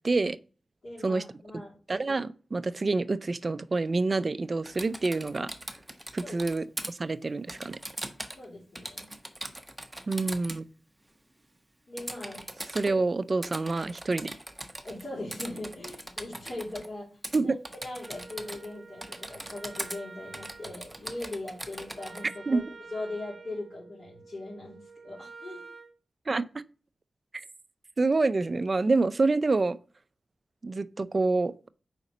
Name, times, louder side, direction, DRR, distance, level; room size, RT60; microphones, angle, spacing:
voice 1, 0.0-0.4 1.0-1.2 1.9-5.5 6.1-7.8 10.1-10.6 12.7-14.3 17.3-17.6 22.5-22.6 26.3-26.5 27.3-27.4 28.0-29.8 30.6-31.5, right 3 dB, 35° right, 0.4 m, -27 dB
voice 2, 0.8-1.8 6.2-6.4 6.8-6.9 8.3-9.1 11.9-12.4 12.8-12.9 13.4-13.5 14.8-17.1 17.4-22.6 22.9-25.6, left 2 dB, 50° left, 3.4 m, -40 dB
Typing, 4.7-6.9 7.5-8.5 8.8-10.6 12.0-12.9 13.4-15.0 15.3-16.9 17.2-17.4 17.6-18.7 19.0-20.0 20.3-22.2, right 1 dB, 10° right, 0.8 m, -40 dB
Wind instrument woodwind instrument, 18.0-26.0, right 4 dB, 55° right, 0.7 m, -49 dB
4.9 x 4.0 x 5.3 m
wide cardioid pair, 130°, 0 cm